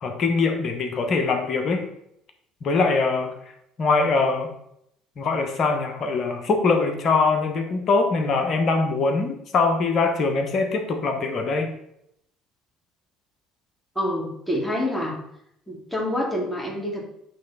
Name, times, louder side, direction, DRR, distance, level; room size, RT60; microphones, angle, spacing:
voice 1, 0.0-1.9 2.6-3.3 3.8-4.5 5.2-11.7, left 4 dB, 50° left, 5 dB, 1.1 m, -22 dB
voice 2, 14.0-15.2 15.7-17.1, left 1 dB, 5° left, -3 dB, 2.2 m, -27 dB
8.6 x 3.2 x 4.1 m, 0.75 s
hypercardioid pair, 60°, 0 cm